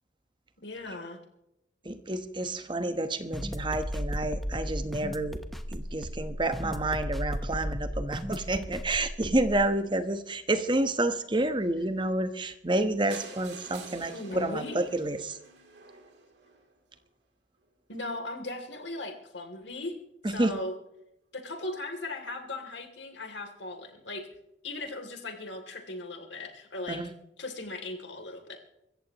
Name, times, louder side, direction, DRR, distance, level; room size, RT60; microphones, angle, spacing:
voice 1, 0.6-1.2 14.1-14.8 17.9-20.0 20.3-20.7 21.3-24.3 24.6-27.0 27.4-28.6, left 2 dB, 65° left, 5 dB, 3.1 m, -38 dB
voice 2, 1.8-5.4 5.7-15.4 20.2-20.6 26.9-27.1, right 1 dB, 25° right, 10 dB, 1.1 m, -29 dB
sound 1, 3.3-9.7, equal, ahead, 1.0 m, -35 dB
sound 2, 13.1-17.0 17.6-17.7 18.0-18.1 18.4-18.5 18.6-18.7, right 4 dB, 65° right, 3.0 m, -48 dB
25.0 x 14.5 x 3.0 m, 0.86 s
head